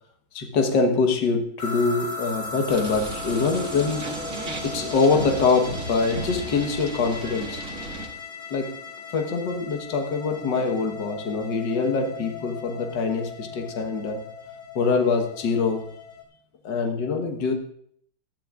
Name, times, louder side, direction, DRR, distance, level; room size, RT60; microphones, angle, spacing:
voice 1, 0.3-4.1 4.6-7.6 8.5-8.8 9.1-14.2 14.8-15.9 16.6-17.5, left 4 dB, 65° left, 4 dB, 1.9 m, -24 dB
sound 1, 1.6-16.2, left 4 dB, 85° left, 3.2 m, -38 dB
sound 2, 2.7-8.1, right 2 dB, 45° right, 2.0 m, -35 dB
19.5 x 13.0 x 2.5 m, 0.64 s
omnidirectional pair, 2.2 m